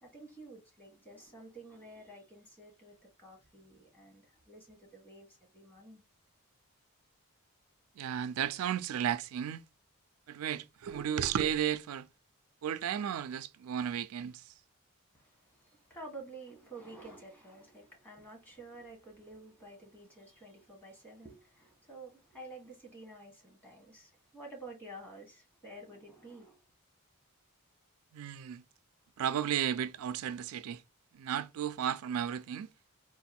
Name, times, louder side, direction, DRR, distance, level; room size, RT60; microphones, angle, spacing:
voice 1, 0.0-6.0 15.1-26.6, right 2 dB, 10° left, 1.2 m, -51 dB
voice 2, 8.0-9.6 10.3-12.1 12.6-14.5 28.1-28.6 29.2-30.8 31.1-32.7, right 9 dB, 75° right, 0.3 m, -34 dB
3.8 x 2.5 x 4.3 m
head